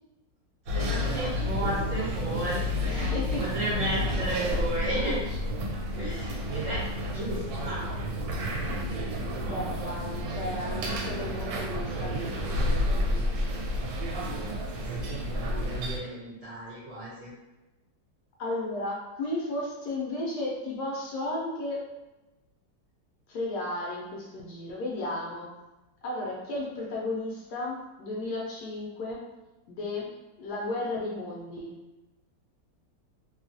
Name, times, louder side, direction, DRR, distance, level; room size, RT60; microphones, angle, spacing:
voice 1, 0.7-3.1 3.4-5.2 6.0-6.8 7.1-8.0 14.2-17.3, right 1 dB, 60° right, -7 dB, 0.9 m, -34 dB
sound 1, 0.7-16.0, left 1 dB, 75° right, 1.2 m, -30 dB
voice 2, 2.8-3.5 4.5-4.6 6.5-6.6 9.4-12.8 18.4-21.8 23.3-25.5 26.0-29.2 29.7-31.7, left 2 dB, 70° left, -3 dB, 1.0 m, -34 dB
3.0 x 2.3 x 2.6 m, 1.0 s
omnidirectional pair, 2.0 m